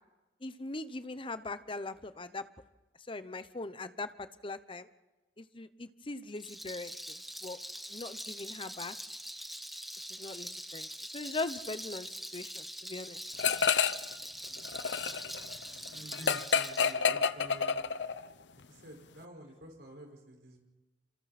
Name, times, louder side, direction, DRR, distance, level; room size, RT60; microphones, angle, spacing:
voice 1, 0.4-2.4 3.1-4.9 5.4-7.6 7.9-9.0 10.1-10.9 11.1-13.2, left 2 dB, 30° left, 12 dB, 0.9 m, -40 dB
Rattle, 6.3-16.9, equal, ahead, 1.4 m, -43 dB
sound 1, 13.4-14.1 14.4-18.3, left 6 dB, 80° left, 0.8 m, -29 dB
voice 2, 15.9-17.9 18.7-20.6, equal, 70° right, 2 dB, 5.3 m, -50 dB
27.5 x 26.5 x 4.3 m, 1.1 s
head